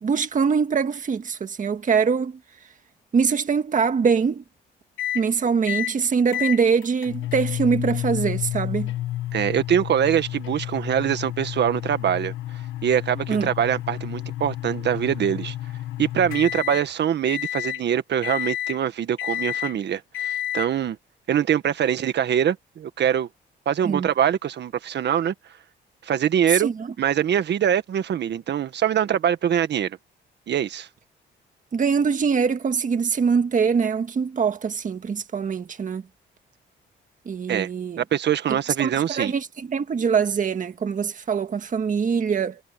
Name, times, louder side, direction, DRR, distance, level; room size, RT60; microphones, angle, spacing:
voice 1, 0.0-2.4 3.1-4.4 5.1-8.9 13.3-13.5 23.8-24.1 26.5-26.9 31.7-36.0 37.2-38.0 38.8-42.6, right 6 dB, 40° right, 1.7 m, -23 dB
sound 1, 5.0-5.3 5.7-6.0 6.3-16.9 17.3-17.8 18.2-18.8 19.2-19.7 20.1-20.7, left 13 dB, 80° left, 1.2 m, -30 dB
voice 2, 9.3-12.3 12.8-15.5 16.0-21.0 21.3-23.3 23.6-25.3 26.0-26.7 27.0-30.0 30.5-30.9 37.5-37.7 38.0-39.3, right 9 dB, 60° right, 1.6 m, -23 dB
cardioid pair, 90°, 20 cm